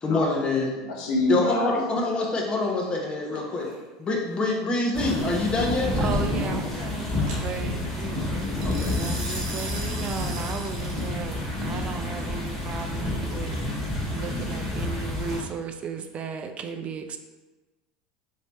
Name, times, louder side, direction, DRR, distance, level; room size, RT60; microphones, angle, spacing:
voice 1, 0.0-0.7 1.3-3.7 4.0-6.1 8.6-8.9, left 2 dB, 25° left, 0 dB, 0.8 m, -26 dB
voice 2, 0.9-1.8 3.3-3.7, left 1 dB, 70° left, -1 dB, 0.8 m, -27 dB
sound 1, 3.3-3.7 7.3-7.4 8.6-11.1, right 3 dB, 75° right, 0.9 m, -37 dB
sound 2, 4.9-15.4, left 1 dB, 10° left, 1.3 m, -29 dB
voice 3, 6.0-8.4 8.9-13.6 14.1-17.2, right 5 dB, 35° right, 6 dB, 0.4 m, -35 dB
3.2 x 2.7 x 3.0 m, 1.2 s
supercardioid pair, 100°, 4 cm